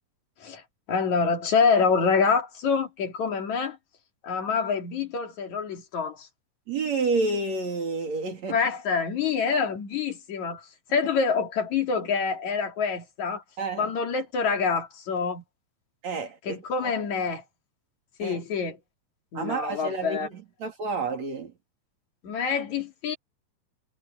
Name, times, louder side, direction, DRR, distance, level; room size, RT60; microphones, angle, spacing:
voice 1, 0.9-3.8 4.2-6.3 8.5-10.7 10.9-13.4 13.8-15.4 16.5-17.4 18.2-18.8 19.3-20.3 22.2-23.2, left 5 dB, 60° left, 4.1 m, -26 dB
voice 2, 6.7-8.6 13.6-13.9 16.0-16.9 18.2-18.4 19.3-21.5, right 3 dB, 55° right, 4.2 m, -30 dB
omnidirectional pair, 3.8 m